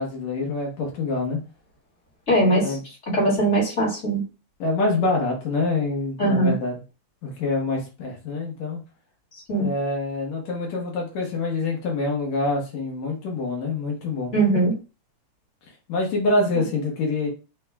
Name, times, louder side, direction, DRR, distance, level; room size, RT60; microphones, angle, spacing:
voice 1, 0.0-1.4 2.5-2.8 4.6-6.8 7.2-8.8 9.6-14.3 15.9-17.3, left 2 dB, 65° left, 0 dB, 2.5 m, -26 dB
voice 2, 2.3-2.7 3.1-4.2 6.2-6.5 9.5-9.7 14.3-14.7, right 1 dB, 30° left, -6 dB, 1.7 m, -20 dB
7.7 x 2.7 x 2.3 m, 0.32 s
omnidirectional pair, 3.5 m